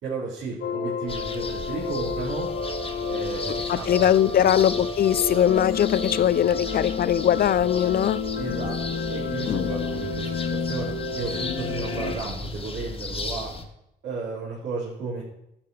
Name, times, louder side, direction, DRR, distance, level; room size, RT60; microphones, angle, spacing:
voice 1, 0.0-2.5 3.1-4.8 6.5-6.8 8.3-13.5 14.0-15.2, right 4 dB, 70° right, 4.2 m, -34 dB
sound 1, 0.6-12.1, left 5 dB, 70° left, 1.6 m, -30 dB
sound 2, 1.1-13.6, left 3 dB, 30° left, 1.5 m, -36 dB
voice 2, 3.7-8.2 9.5-9.7, left 10 dB, 50° left, 0.4 m, -21 dB
13.5 x 5.7 x 6.5 m
cardioid pair, 90°, 20 cm